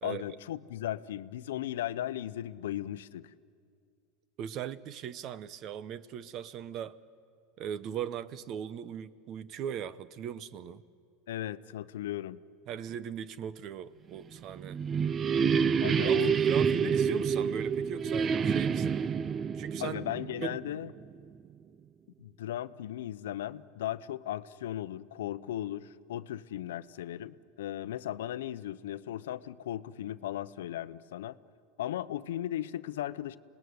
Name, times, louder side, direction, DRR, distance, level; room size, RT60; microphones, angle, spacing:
voice 1, 0.0-3.3 11.3-12.4 15.8-16.4 19.8-20.9 22.2-31.4 31.8-33.4, left 12 dB, 85° left, 15 dB, 0.7 m, -36 dB
voice 2, 4.4-7.0 7.6-10.8 12.7-14.8 16.0-19.0 19.5-20.0 20.4-20.6, right 9 dB, 45° right, 17 dB, 0.8 m, -38 dB
sound 1, 14.3-21.0, right 7 dB, 25° right, 0.5 m, -28 dB
27.0 x 19.0 x 9.5 m, 2.3 s
supercardioid pair, 130°, 0 cm